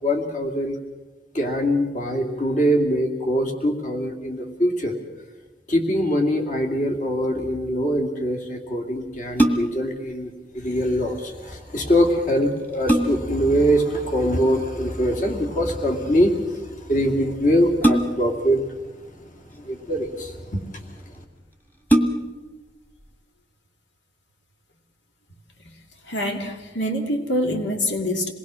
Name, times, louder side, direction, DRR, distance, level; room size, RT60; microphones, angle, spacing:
voice 1, 0.0-0.8 1.3-4.9 5.7-18.6 18.9-20.8 21.1-21.2, equal, 45° left, 3 dB, 2.5 m, -23 dB
sound 1, 9.1-9.9 11.9-12.0 12.5-13.4 15.0-15.4 17.8-18.4 19.4-20.1 20.8-20.9 21.2-21.3 21.8-22.5 23.0-23.1, right 1 dB, 10° left, 1.7 m, -22 dB
voice 2, 25.6-28.3, left 1 dB, 75° left, 4 dB, 2.5 m, -26 dB
27.0 x 20.0 x 6.3 m, 1.2 s
head